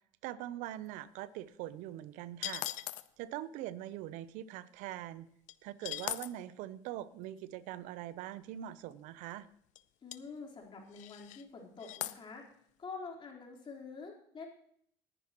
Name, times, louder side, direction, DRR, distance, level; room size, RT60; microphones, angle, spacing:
voice 1, 0.2-2.7 3.2-5.3 5.6-9.5, right 13 dB, 75° right, 17 dB, 0.7 m, -42 dB
sound 1, 2.4-3.1 5.5-5.6 5.8-6.3 8.9-9.0 9.3-9.4 9.8-9.9 10.1-10.2 10.9-11.4 11.8-12.2, left 16 dB, 70° left, 0.6 m, -39 dB
voice 2, 10.0-12.4 12.8-14.5, left 4 dB, 40° left, -1 dB, 4.1 m, -47 dB
20.0 x 10.0 x 3.0 m, 0.65 s
supercardioid pair, 75°, 13 cm